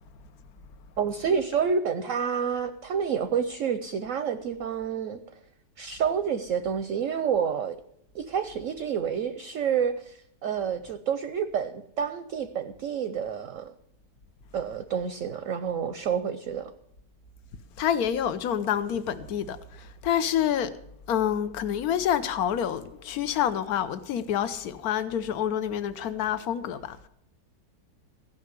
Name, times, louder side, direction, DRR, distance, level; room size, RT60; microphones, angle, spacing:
voice 1, 1.0-5.2 5.8-7.8 8.1-13.7 14.5-16.7, right 7 dB, 60° right, 0.9 m, -29 dB
voice 2, 17.8-20.7 21.1-27.1, left 9 dB, 60° left, 1.3 m, -28 dB
16.0 x 5.7 x 9.7 m
omnidirectional pair, 1.9 m